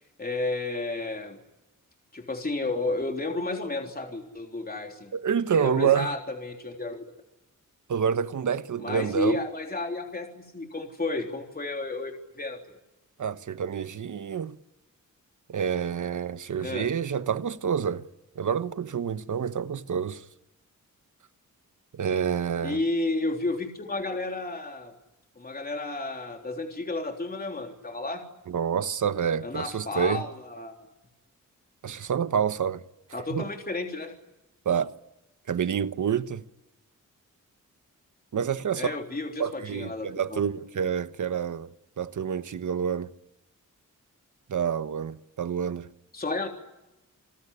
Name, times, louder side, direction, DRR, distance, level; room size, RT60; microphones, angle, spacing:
voice 1, 0.2-1.4 2.1-5.1 5.5-7.0 8.8-12.8 16.6-16.9 22.6-24.9 25.4-28.2 29.4-30.7 33.1-34.1 38.7-40.4 46.1-46.5, left 2 dB, 30° left, 3.6 m, -32 dB
voice 2, 5.1-6.1 7.9-9.4 13.2-14.6 15.5-18.0 18.4-20.2 21.9-22.8 28.5-30.3 31.8-32.8 33.3-33.5 34.6-34.9 35.5-36.4 38.3-38.9 39.4-41.7 42.0-43.1 44.5-45.9, right 7 dB, 70° right, 1.2 m, -28 dB
28.5 x 19.5 x 10.0 m
wide cardioid pair, 105°, 32 cm